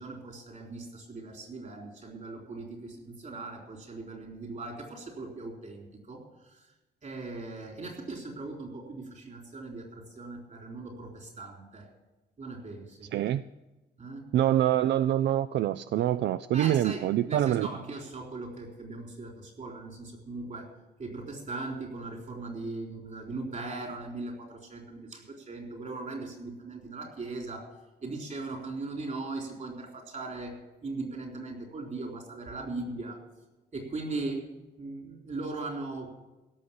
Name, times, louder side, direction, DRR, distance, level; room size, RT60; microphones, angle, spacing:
voice 1, 0.0-6.2 7.0-11.9 12.4-13.1 14.0-14.2 16.5-20.7 21.0-27.6 28.0-30.5 30.8-33.2 33.7-34.4 34.8-36.1, right 3 dB, 45° right, 1 dB, 3.9 m, -39 dB
voice 2, 13.1-13.4 14.3-17.7, right 12 dB, 85° right, 14 dB, 0.4 m, -25 dB
16.5 x 6.5 x 8.6 m, 1.1 s
wide cardioid pair, 130°, 18 cm